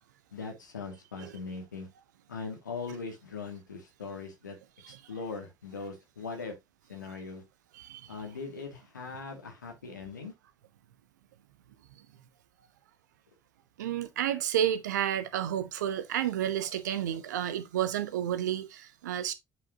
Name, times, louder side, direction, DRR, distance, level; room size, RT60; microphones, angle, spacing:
voice 1, 0.3-1.9 2.3-4.6 4.9-6.5 6.9-7.4 8.1-10.3, left 4 dB, 85° left, 1.7 m, -40 dB
voice 2, 7.7-8.1 13.8-19.3, right 10 dB, 75° right, 0.7 m, -31 dB
8.3 x 5.0 x 2.8 m
figure-of-eight pair, 55°, 10 cm